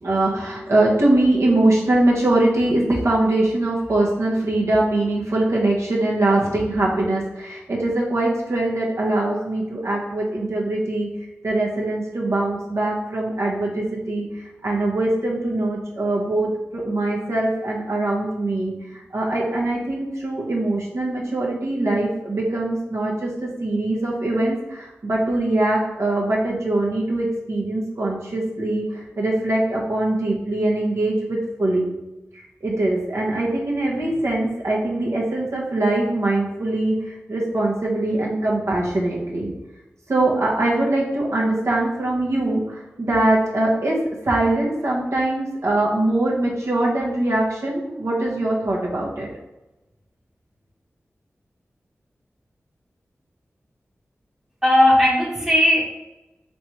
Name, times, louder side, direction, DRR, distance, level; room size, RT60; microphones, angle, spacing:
voice 1, 0.0-11.1 11.4-31.9 32.6-39.5 40.1-44.0 44.2-49.3, right 2 dB, 70° right, -4 dB, 1.0 m, -22 dB
voice 2, 54.6-55.9, left 1 dB, 15° right, -4 dB, 0.9 m, -16 dB
3.3 x 2.9 x 4.4 m, 1.0 s
cardioid pair, 45°, 5 cm